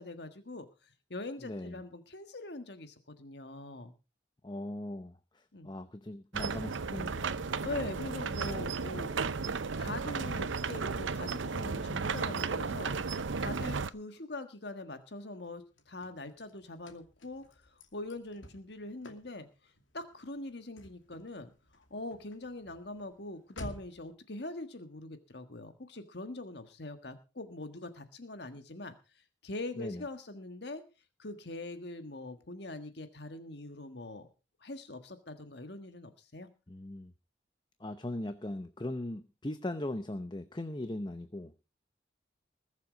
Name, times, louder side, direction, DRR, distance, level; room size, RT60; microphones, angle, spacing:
voice 1, 0.0-3.9 5.5-5.7 7.6-9.1 9.8-30.8 31.2-34.3 34.6-36.5, left 2 dB, 60° left, 8 dB, 1.5 m, -43 dB
voice 2, 1.4-1.8 4.4-7.4 29.8-30.0 36.7-37.1 37.8-41.6, left 1 dB, 25° left, 10 dB, 0.7 m, -39 dB
sound 1, 6.3-13.9, right 4 dB, 80° right, 0.7 m, -34 dB
Car / Slam, 15.4-24.1, left 1 dB, 90° left, 2.6 m, -52 dB
21.0 x 7.5 x 5.0 m, 0.32 s
head